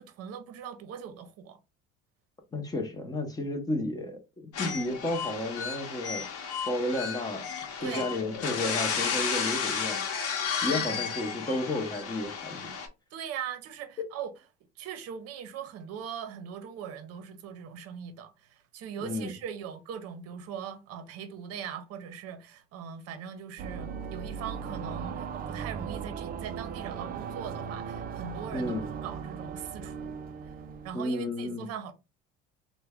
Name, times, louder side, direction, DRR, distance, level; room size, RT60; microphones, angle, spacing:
voice 1, 0.0-1.6 7.8-8.1 10.6-11.0 13.1-14.3 14.8-30.2 30.8-31.9, right 8 dB, 55° right, 0.8 m, -40 dB
voice 2, 2.5-6.3 6.7-10.0 10.6-12.7 14.0-14.1 19.0-19.3 28.5-28.9 30.9-31.7, left 1 dB, 15° left, 0.8 m, -32 dB
sound 1, 4.5-12.9, left 6 dB, 50° left, 1.0 m, -33 dB
sound 2, 23.6-30.9, right 6 dB, 30° right, 0.4 m, -38 dB
3.3 x 2.2 x 3.4 m
cardioid pair, 140°, 30 cm